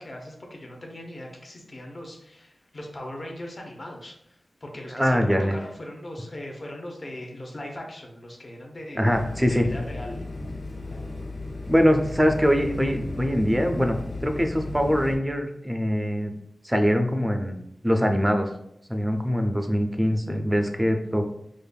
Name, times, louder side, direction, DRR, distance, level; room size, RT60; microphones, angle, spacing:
voice 1, 0.0-9.0 9.5-10.2, left 1 dB, 35° left, 0 dB, 0.7 m, -39 dB
voice 2, 4.9-5.6 8.9-9.7 11.7-16.3 16.6-17.5 17.8-18.5 18.9-21.2, equal, 10° right, 5 dB, 0.4 m, -23 dB
sound 1, 9.1-15.2, left 2 dB, 65° left, 1.0 m, -35 dB
5.0 x 2.5 x 2.2 m, 0.76 s
wide cardioid pair, 105°, 0 cm